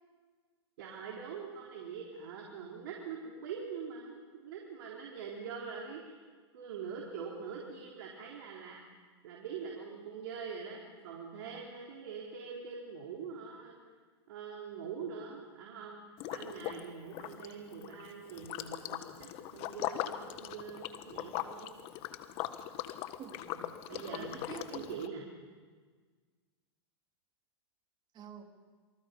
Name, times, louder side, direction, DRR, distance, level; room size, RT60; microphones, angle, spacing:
voice 1, 0.8-6.2 6.5-8.8 9.2-13.7 14.3-16.0 16.3-21.8 23.9-25.2, right 6 dB, 65° right, -2 dB, 4.2 m, -44 dB
Liquid, 16.2-16.9 17.1-25.1, left 13 dB, 40° left, 1.6 m, -40 dB
voice 2, 23.2-24.9 28.1-28.5, right 7 dB, 30° right, 4 dB, 3.4 m, -47 dB
27.5 x 24.5 x 5.4 m, 1.5 s
hypercardioid pair, 115°, 14 cm